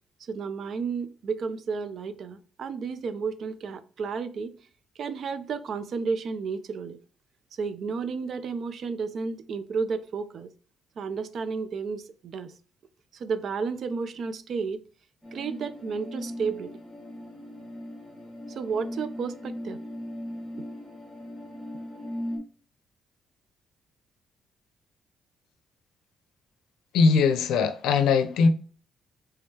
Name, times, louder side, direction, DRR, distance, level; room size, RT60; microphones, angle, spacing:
voice 1, 0.3-4.5 5.0-7.0 7.5-10.5 11.0-12.5 13.1-14.8 15.3-16.8 18.5-19.8, right 5 dB, 60° right, 0.4 m, -32 dB
sound 1, 15.2-22.4, left 1 dB, 15° left, 1.2 m, -38 dB
voice 2, 26.9-28.5, left 5 dB, 85° left, 0.5 m, -21 dB
3.5 x 3.4 x 2.8 m
cardioid pair, 90°, 0 cm